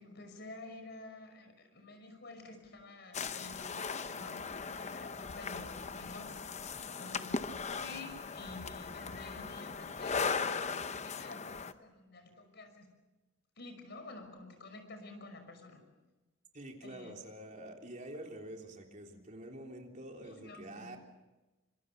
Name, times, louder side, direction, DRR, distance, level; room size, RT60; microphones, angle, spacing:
voice 1, 0.0-6.3 7.0-12.9 13.6-15.8 16.8-17.1 20.2-21.0, left 2 dB, 60° left, 6 dB, 5.7 m, -50 dB
sound 1, 3.1-11.7, left 5 dB, 35° left, 0.8 m, -38 dB
voice 2, 16.5-21.0, right 1 dB, 40° right, 2 dB, 3.5 m, -47 dB
26.0 x 23.5 x 6.8 m, 1.1 s
head